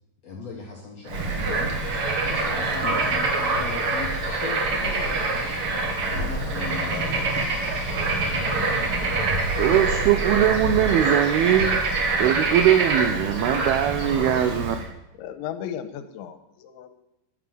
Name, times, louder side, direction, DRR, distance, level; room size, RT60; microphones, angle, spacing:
voice 1, 0.2-5.4 6.1-7.3, left 4 dB, 70° left, 0 dB, 1.5 m, -37 dB
Bird / Frog, 1.1-14.8, right 3 dB, 50° right, 1.8 m, -25 dB
voice 2, 4.7-5.1 6.9-7.4 15.2-16.9, left 9 dB, 85° left, 10 dB, 3.3 m, -36 dB
voice 3, 9.6-11.8 12.2-14.8, right 11 dB, 85° right, 8 dB, 2.2 m, -21 dB
11.0 x 10.5 x 7.8 m, 0.88 s
omnidirectional pair, 5.3 m